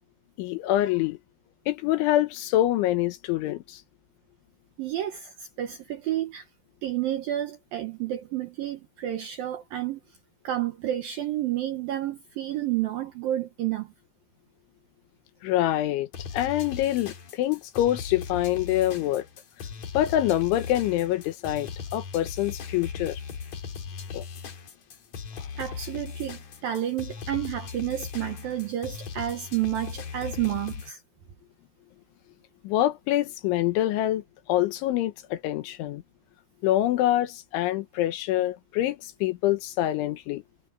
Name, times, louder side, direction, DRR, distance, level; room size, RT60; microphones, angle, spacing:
voice 1, 0.4-1.2 1.7-3.8 15.4-16.1 16.3-19.3 20.0-23.2 24.1-24.3 25.4-25.5 32.7-36.0 36.6-40.4, left 14 dB, 80° left, 3.5 m, -25 dB
voice 2, 4.8-6.5 6.8-10.0 10.4-13.9 25.6-31.0, right 12 dB, 70° right, 2.3 m, -30 dB
sound 1, 16.1-30.9, left 6 dB, 45° left, 2.7 m, -38 dB
omnidirectional pair, 5.5 m